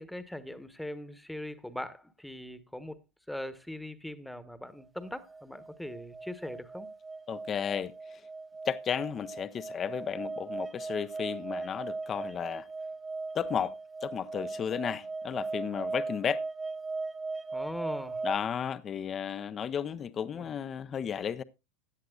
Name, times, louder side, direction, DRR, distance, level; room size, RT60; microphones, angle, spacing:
voice 1, 0.0-3.0 3.3-6.9 17.5-18.3 20.3-20.5, left 1 dB, 5° left, 1.2 m, -40 dB
sound 1, 5.0-18.4, right 3 dB, 15° right, 0.5 m, -38 dB
voice 2, 7.3-8.2 8.6-12.7 13.3-13.7 14.0-16.4 18.2-21.4, left 8 dB, 30° left, 0.7 m, -33 dB
16.0 x 10.5 x 2.4 m
hypercardioid pair, 85°, 0 cm